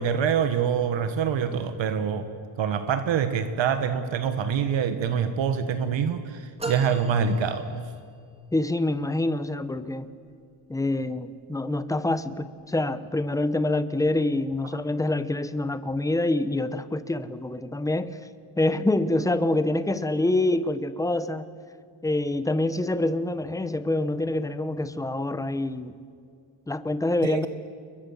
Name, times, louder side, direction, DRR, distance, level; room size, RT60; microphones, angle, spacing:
voice 1, 0.0-2.3 2.6-7.8 27.2-27.5, right 7 dB, 65° right, 9 dB, 1.6 m, -25 dB
sound 1, 6.6-8.3, right 2 dB, 15° right, 2.4 m, -37 dB
voice 2, 8.5-10.1 10.7-18.2 18.6-21.5 22.0-25.9 26.7-27.5, left 2 dB, 5° left, 12 dB, 0.9 m, -26 dB
29.5 x 23.0 x 7.3 m, 2.4 s
cardioid pair, 165°, 47 cm